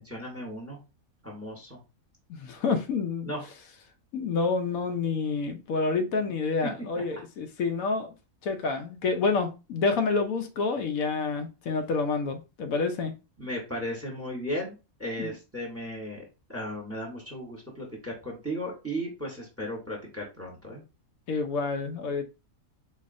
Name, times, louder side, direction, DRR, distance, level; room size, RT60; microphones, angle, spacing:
voice 1, 0.1-0.8 1.2-1.8 3.2-3.4 6.6-6.7 13.4-16.2 16.5-20.8, equal, 10° right, 1.0 m, -35 dB
voice 2, 2.3-3.3 4.1-8.1 8.4-13.1 15.2-15.4 21.3-22.2, left 4 dB, 80° left, 1.1 m, -28 dB
4.0 x 2.8 x 2.5 m
omnidirectional pair, 1.5 m